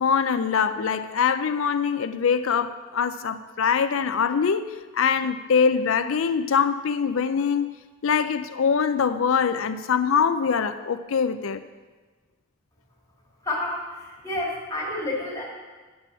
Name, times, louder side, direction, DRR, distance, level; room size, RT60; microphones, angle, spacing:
voice 1, 0.0-4.7 4.9-7.7 8.0-11.6, left 6 dB, 80° left, 11 dB, 0.5 m, -23 dB
voice 2, 13.4-15.4, left 1 dB, 15° left, -3 dB, 2.1 m, -30 dB
9.8 x 6.1 x 6.9 m, 1.4 s
head